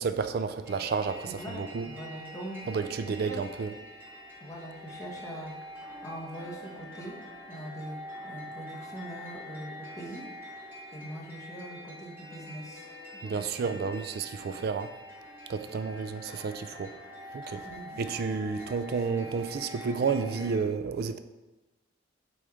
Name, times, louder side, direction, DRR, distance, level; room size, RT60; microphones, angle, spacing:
voice 1, 0.0-1.9 2.7-3.7 13.2-14.9 15.5-16.9 17.3-17.6 18.0-21.2, right 5 dB, 50° right, 10 dB, 0.3 m, -31 dB
sound 1, 0.6-20.6, equal, 10° right, 1.4 m, -45 dB
voice 2, 1.2-2.7 3.0-3.4 4.4-5.5 6.0-7.2 7.5-8.0 8.2-10.3 10.6-10.7 10.9-12.9 13.1-13.8 14.6-14.7 17.6-18.0, right 1 dB, 15° left, -3 dB, 1.0 m, -42 dB
8.3 x 3.1 x 3.6 m, 1.1 s
head